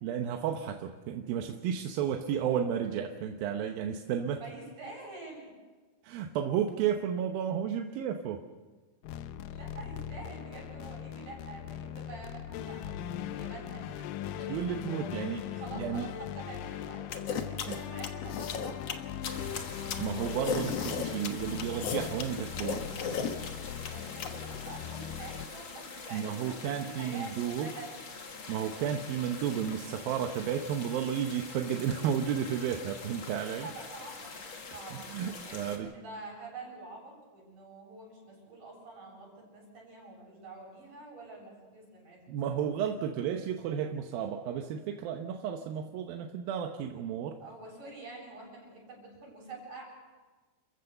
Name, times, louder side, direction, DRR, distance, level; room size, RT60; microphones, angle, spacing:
voice 1, 0.0-4.4 6.0-8.4 14.5-16.1 17.7-17.8 20.0-22.9 26.1-27.7 28.5-33.7 34.9-35.9 42.3-47.4, right 8 dB, 75° right, 4 dB, 2.6 m, -32 dB
voice 2, 4.4-5.5 9.5-17.2 17.5-19.0 23.9-26.5 26.8-28.0 33.6-34.3 34.6-42.2 47.4-49.8, right 3 dB, 55° right, -3 dB, 9.3 m, -47 dB
sound 1, 9.0-25.5, left 10 dB, 75° left, 2.1 m, -40 dB
sound 2, 17.1-24.3, left 6 dB, 60° left, 1.7 m, -34 dB
sound 3, 19.2-35.8, left 4 dB, 40° left, 2.2 m, -45 dB
29.5 x 15.0 x 6.7 m, 1.4 s
omnidirectional pair, 4.6 m